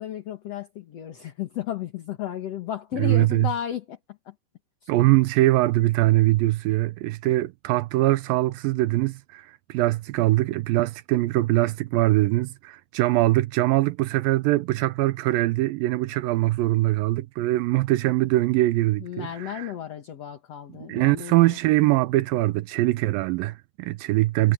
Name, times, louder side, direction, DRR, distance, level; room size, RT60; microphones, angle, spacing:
voice 1, 0.0-4.3 4.8-4.9 19.0-21.6, left 10 dB, 55° left, 1.9 m, -34 dB
voice 2, 3.0-3.5 4.9-19.7 20.9-24.5, right 18 dB, 85° right, 2.0 m, -22 dB
omnidirectional pair, 4.8 m